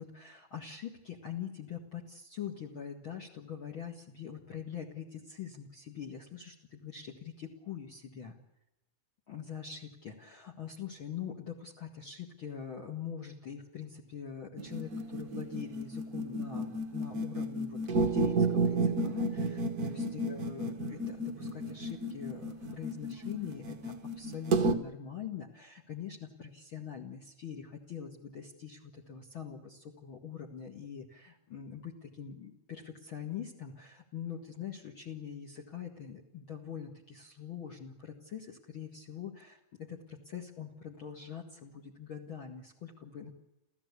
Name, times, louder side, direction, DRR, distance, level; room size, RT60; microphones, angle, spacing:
voice 1, 0.0-8.4 9.3-43.3, left 8 dB, 40° left, 4 dB, 2.3 m, -43 dB
sound 1, 14.6-24.7, right 2 dB, 60° right, 0.9 m, -32 dB
29.5 x 15.0 x 8.4 m, 0.92 s
omnidirectional pair, 4.0 m